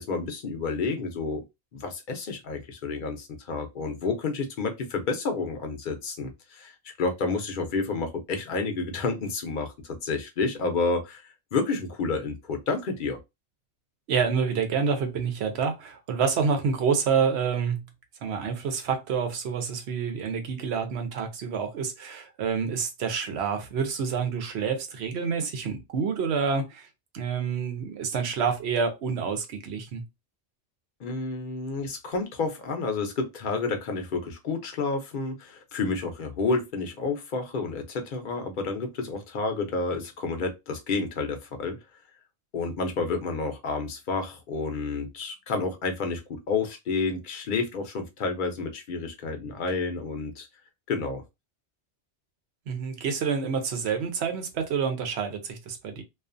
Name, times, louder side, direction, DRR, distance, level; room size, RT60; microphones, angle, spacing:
voice 1, 0.0-1.4 1.7-13.2 31.0-41.8 42.5-50.5 50.9-51.2, left 4 dB, 55° left, 0.7 m, -30 dB
voice 2, 14.1-17.8 18.2-26.9 27.1-30.0 52.7-56.0, right 6 dB, 70° right, 0.9 m, -28 dB
2.4 x 2.4 x 2.5 m
omnidirectional pair, 1.1 m